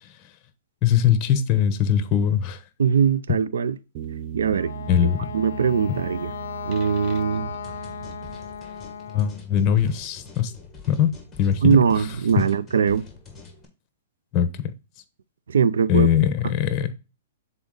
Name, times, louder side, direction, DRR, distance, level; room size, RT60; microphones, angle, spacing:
voice 1, 0.8-2.6 4.9-5.3 5.9-6.0 9.1-10.5 10.9-11.1 11.4-11.8 14.3-14.7 15.9-16.9, left 9 dB, 30° left, 1.0 m, -21 dB
voice 2, 2.8-3.8 4.3-4.7 5.3-6.3 6.6-7.5 11.6-13.1 15.5-16.1 16.4-16.5, right 6 dB, 85° right, 0.4 m, -21 dB
sound 1, 3.9-8.9, right 10 dB, 40° right, 0.6 m, -38 dB
Wind instrument woodwind instrument, 4.4-9.4, left 7 dB, 75° left, 0.5 m, -36 dB
sound 2, 7.6-13.6, left 4 dB, 5° left, 1.9 m, -46 dB
7.1 x 4.0 x 3.9 m
hypercardioid pair, 145°, 0 cm